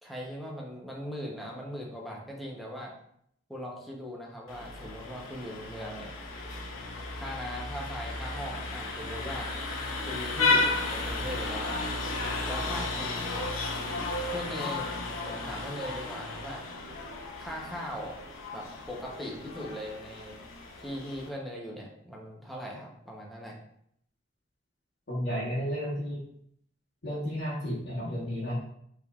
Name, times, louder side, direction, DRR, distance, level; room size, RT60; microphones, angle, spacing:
voice 1, 0.0-2.9 3.5-6.1 7.2-9.5 10.1-11.8 12.5-13.5 14.3-14.9 15.2-16.6 17.4-18.2 18.5-20.3 20.8-23.6, equal, ahead, -3 dB, 0.7 m, -39 dB
Vehicle horn car horn honking, 4.5-21.3, left 3 dB, 90° left, 0.8 m, -33 dB
voice 2, 25.1-26.2 27.0-28.5, equal, 55° left, -9 dB, 1.1 m, -32 dB
5.0 x 3.5 x 2.3 m, 0.70 s
head